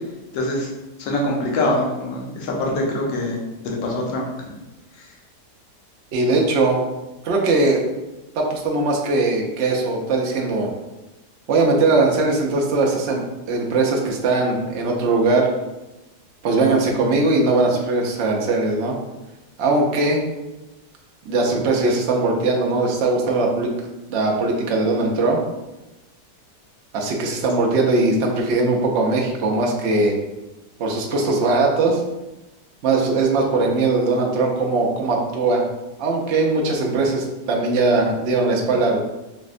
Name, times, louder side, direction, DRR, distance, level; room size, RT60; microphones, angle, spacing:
voice 1, 0.3-0.7 1.0-4.3 5.0-5.1, left 1 dB, 65° left, -2 dB, 1.0 m, -24 dB
voice 2, 6.1-6.8 7.2-7.8 8.4-10.7 11.5-13.2 13.5-15.5 16.4-19.0 19.6-20.2 21.3-23.7 24.1-25.4 26.9-30.1 30.8-32.0 32.8-35.7 36.0-39.0, right 3 dB, 80° right, 0 dB, 0.6 m, -20 dB
4.2 x 2.1 x 2.5 m, 1.0 s
omnidirectional pair, 1.8 m